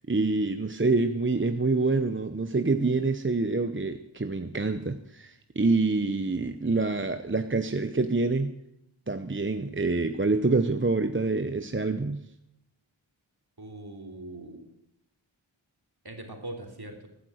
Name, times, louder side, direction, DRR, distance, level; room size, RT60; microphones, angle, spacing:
voice 1, 0.1-8.5 9.1-12.2, right 3 dB, 25° right, 9 dB, 0.8 m, -26 dB
voice 2, 13.6-14.7 16.0-17.1, right 1 dB, 50° right, 3 dB, 3.2 m, -41 dB
16.0 x 9.7 x 6.4 m, 0.81 s
wide cardioid pair, 45°, 48 cm